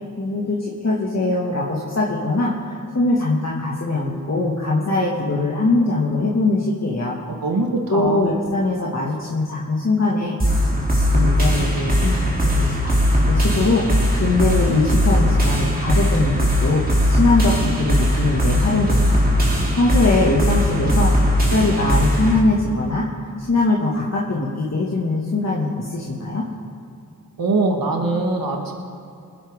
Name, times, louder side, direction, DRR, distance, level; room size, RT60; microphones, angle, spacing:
voice 1, 0.2-7.2 7.9-13.0 13.3-19.2 19.8-21.1 21.5-23.1 23.4-26.5, left 2 dB, 45° left, -5 dB, 2.2 m, -22 dB
voice 2, 7.3-8.4 27.4-28.7, right 3 dB, 70° right, 1 dB, 1.9 m, -22 dB
sound 1, 10.4-22.4, equal, 25° right, 3.4 m, -19 dB
22.0 x 10.0 x 3.8 m, 2.5 s
cardioid pair, 40°, 36 cm